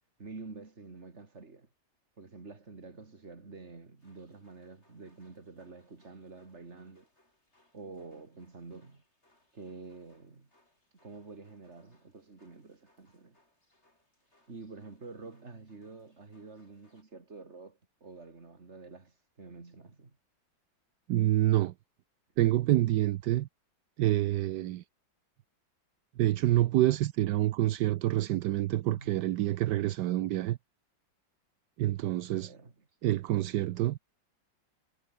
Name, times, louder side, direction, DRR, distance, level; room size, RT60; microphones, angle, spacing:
voice 1, 0.2-1.7 2.2-7.1 7.7-9.0 9.5-10.5 11.0-13.4 14.5-20.2 28.9-29.3 32.2-32.7, right 3 dB, 35° right, 3.0 m, -48 dB
sound 1, 4.0-17.0, left 1 dB, 30° left, 8.1 m, -71 dB
voice 2, 21.1-21.7 22.4-23.5 24.0-24.8 26.2-30.6 31.8-32.5 33.0-34.0, right 14 dB, 70° right, 1.2 m, -27 dB
omnidirectional pair, 2.1 m